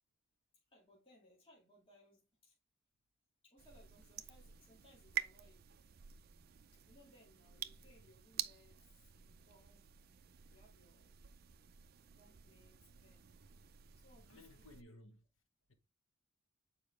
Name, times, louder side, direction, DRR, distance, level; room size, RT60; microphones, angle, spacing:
voice 1, 0.7-2.6 3.4-6.1 6.7-9.9 10.5-11.2 12.1-13.3 14.0-14.5, left 1 dB, 25° left, 2.1 m, -67 dB
sound 1, 3.6-14.8, right 11 dB, 50° right, 0.4 m, -49 dB
voice 2, 14.3-15.2, left 2 dB, 75° left, 1.3 m, -58 dB
7.1 x 4.8 x 3.3 m
head